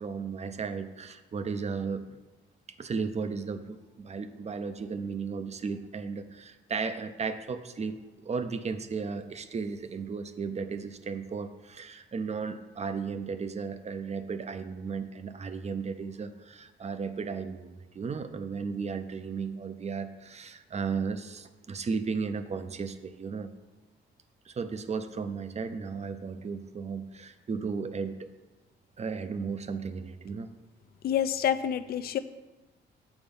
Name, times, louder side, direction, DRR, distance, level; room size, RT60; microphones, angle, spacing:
voice 1, 0.0-2.2 2.8-23.5 24.5-28.3 29.0-30.5, right 5 dB, 35° right, 10 dB, 0.6 m, -35 dB
voice 2, 31.0-32.2, left 9 dB, 50° left, 12 dB, 0.4 m, -27 dB
7.1 x 4.3 x 5.3 m, 1.2 s
cardioid pair, 90°, 20 cm